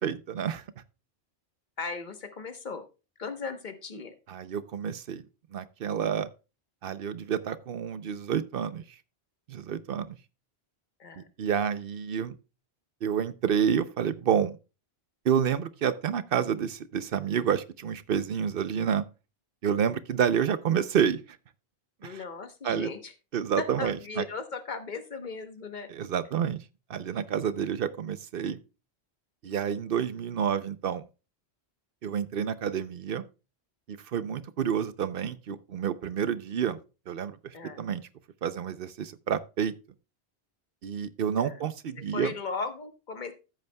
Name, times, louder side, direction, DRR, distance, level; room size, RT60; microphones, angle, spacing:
voice 1, 0.0-0.6 4.3-5.2 5.5-6.3 6.8-8.8 9.5-10.2 11.2-12.3 13.0-14.6 15.2-19.0 19.6-21.2 22.0-22.2 22.6-22.9 23.3-24.2 25.9-26.6 26.9-28.6 29.4-31.0 32.0-33.2 33.9-36.8 37.1-38.0 38.4-39.7 40.8-42.3, right 8 dB, 60° right, 0.8 m, -29 dB
voice 2, 1.8-2.8 3.2-4.1 11.0-11.3 22.0-23.1 23.6-25.9 37.5-37.8 41.4-41.6 42.1-43.3, left 4 dB, 45° left, 1.2 m, -37 dB
14.0 x 8.1 x 2.2 m
omnidirectional pair, 1.1 m